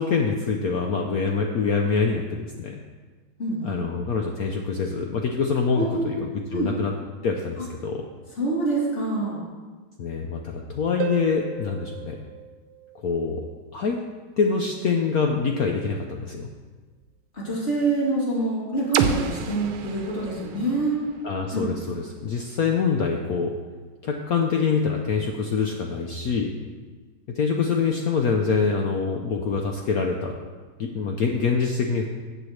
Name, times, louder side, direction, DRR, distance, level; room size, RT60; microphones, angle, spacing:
voice 1, 0.0-2.8 3.6-6.9 7.2-8.0 10.0-12.2 13.0-13.4 13.7-14.0 14.4-16.5 21.2-23.5 24.0-26.5 27.4-30.3 30.8-32.1, left 5 dB, 70° left, 2 dB, 0.9 m, -25 dB
voice 2, 3.4-3.8 5.7-6.1 6.5-6.7 8.3-9.4 17.3-21.0 21.5-21.7, right 2 dB, 30° left, -7 dB, 3.2 m, -26 dB
Harp, 11.0-13.5 17.0-17.1, right 9 dB, 65° right, 1.0 m, -35 dB
sound 1, 18.9-22.8, right 7 dB, 90° right, 1.5 m, -31 dB
13.5 x 7.9 x 3.2 m, 1.4 s
omnidirectional pair, 2.3 m